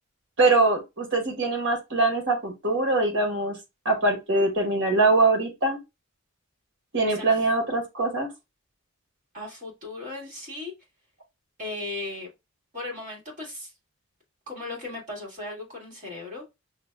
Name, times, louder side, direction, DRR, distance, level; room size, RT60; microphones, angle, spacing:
voice 1, 0.4-3.6 3.8-5.8 6.9-8.3, right 2 dB, 60° right, 1.4 m, -23 dB
voice 2, 9.3-10.7 11.6-12.3 12.7-13.7 14.5-16.4, left 2 dB, 35° right, 1.9 m, -36 dB
5.7 x 2.3 x 2.2 m
head